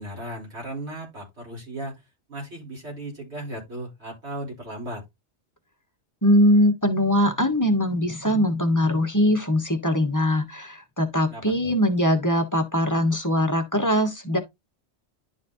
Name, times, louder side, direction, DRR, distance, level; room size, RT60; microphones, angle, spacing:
voice 1, 0.0-2.0 2.3-5.0 11.3-11.7, right 1 dB, 70° right, 3.8 m, -36 dB
voice 2, 6.2-14.4, equal, 15° left, 1.2 m, -21 dB
11.0 x 4.2 x 2.7 m
omnidirectional pair, 1.2 m